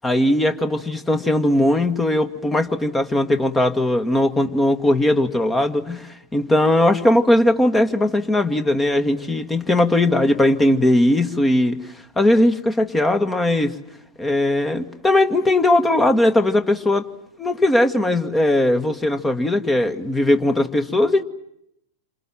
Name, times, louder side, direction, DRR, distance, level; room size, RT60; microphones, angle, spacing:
voice 1, 0.0-11.8 12.2-13.8 14.2-17.1 17.4-21.2, left 1 dB, 10° left, 9 dB, 1.8 m, -19 dB
28.5 x 27.0 x 7.5 m, 0.79 s
figure-of-eight pair, 90°, 0 cm